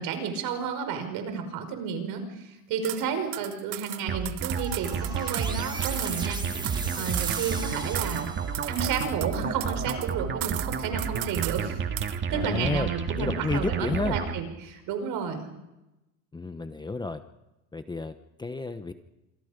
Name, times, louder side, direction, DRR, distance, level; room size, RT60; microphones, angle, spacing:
voice 1, 0.0-8.3 8.7-11.8 12.3-15.5, right 6 dB, 60° right, 7 dB, 5.4 m, -32 dB
sound 1, 2.8-3.0 3.3-5.5 5.8-7.7 8.0-8.3 8.5-10.1 10.4-11.7 12.0-12.2, right 21 dB, 80° right, 0.9 m, -36 dB
sound 2, 4.1-14.4, right 6 dB, 30° right, 2.0 m, -31 dB
sound 3, 4.5-8.8, right 3 dB, 10° right, 1.9 m, -38 dB
voice 2, 12.3-14.2 16.3-17.2 17.7-18.9, left 3 dB, 10° left, 9 dB, 0.9 m, -31 dB
27.0 x 23.5 x 5.2 m, 0.98 s
supercardioid pair, 125°, 39 cm